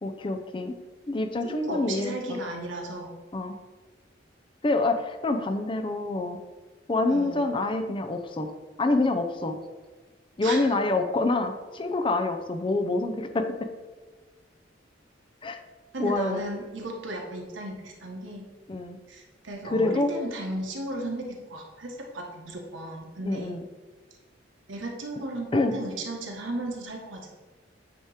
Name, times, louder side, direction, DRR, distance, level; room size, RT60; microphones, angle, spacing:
voice 1, 0.0-0.8 1.1-2.4 3.3-3.6 4.6-6.4 6.9-8.5 8.8-9.6 10.4-13.7 15.4-15.6 16.0-16.4 18.7-19.0 19.6-20.1 23.2-23.6 25.5-25.8, left 2 dB, 25° left, 6 dB, 0.5 m, -26 dB
voice 2, 1.5-3.1 7.1-7.4 10.4-10.7 15.9-18.5 19.1-23.6 24.7-27.5, right 1 dB, 85° right, 1 dB, 1.3 m, -35 dB
8.8 x 3.0 x 4.9 m, 1.3 s
head